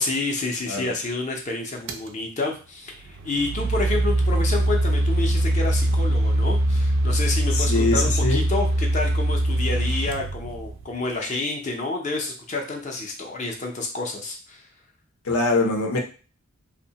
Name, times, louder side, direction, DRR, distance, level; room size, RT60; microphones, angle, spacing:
voice 1, 0.0-14.7, left 3 dB, 35° left, 2 dB, 0.4 m, -29 dB
sound 1, 1.9-2.1 3.0-11.0, right 1 dB, 65° right, 0.3 m, -22 dB
voice 2, 7.5-8.4 15.2-16.0, left 2 dB, 85° left, 2 dB, 0.6 m, -23 dB
2.7 x 2.1 x 2.7 m, 0.36 s
head